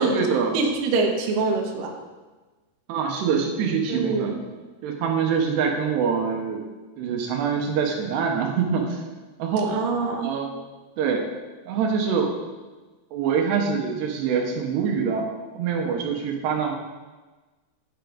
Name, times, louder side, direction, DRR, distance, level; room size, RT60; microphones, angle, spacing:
voice 1, 0.0-0.6 2.9-4.3 4.8-6.6 7.0-9.1 9.4-9.7 10.2-10.5 11.0-11.2 11.7-12.3 13.1-15.3 15.6-16.7, right 6 dB, 85° right, 2 dB, 3.0 m, -24 dB
voice 2, 0.5-1.9 3.9-4.4 9.7-10.3, right 4 dB, 65° right, 1 dB, 2.5 m, -24 dB
10.5 x 8.1 x 3.8 m, 1.2 s
omnidirectional pair, 4.9 m